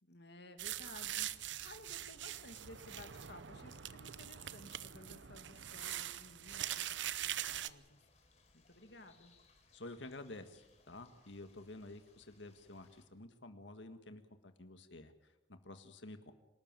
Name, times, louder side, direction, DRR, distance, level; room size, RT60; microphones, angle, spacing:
voice 1, 0.0-8.0 8.5-9.3, left 2 dB, 65° left, 7 dB, 2.5 m, -56 dB
sound 1, 0.6-7.7, right 11 dB, 80° right, 0.8 m, -43 dB
sound 2, 6.5-13.0, left 3 dB, 35° left, 4.1 m, -69 dB
voice 2, 9.7-16.3, left 2 dB, 80° left, 8 dB, 1.8 m, -51 dB
26.0 x 13.0 x 9.2 m, 0.98 s
head